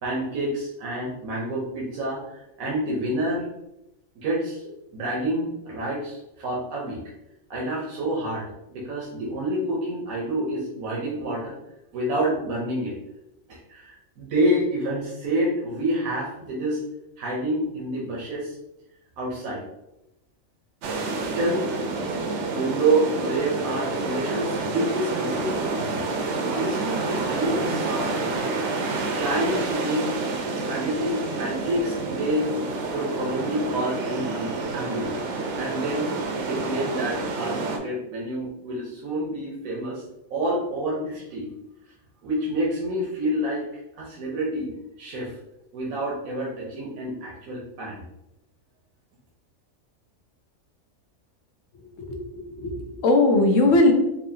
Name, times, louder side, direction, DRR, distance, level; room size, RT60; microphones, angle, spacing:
voice 1, 0.0-3.5 4.2-4.6 4.9-7.0 7.5-11.6 11.9-12.9 13.5-16.8 17.2-18.6 19.2-19.6 21.2-21.7 22.5-28.4 29.2-30.1 30.7-32.5 32.9-35.2 35.6-36.1 36.4-40.0 40.3-41.5 42.2-43.6 44.0-45.3 45.7-48.0, right 1 dB, 90° right, -4 dB, 1.3 m, -28 dB
sound 1, 20.8-37.8, right 3 dB, 65° right, 0.8 m, -28 dB
voice 2, 52.0-53.9, left 2 dB, 70° left, 3 dB, 1.0 m, -20 dB
4.5 x 2.7 x 2.7 m, 0.89 s
omnidirectional pair, 1.4 m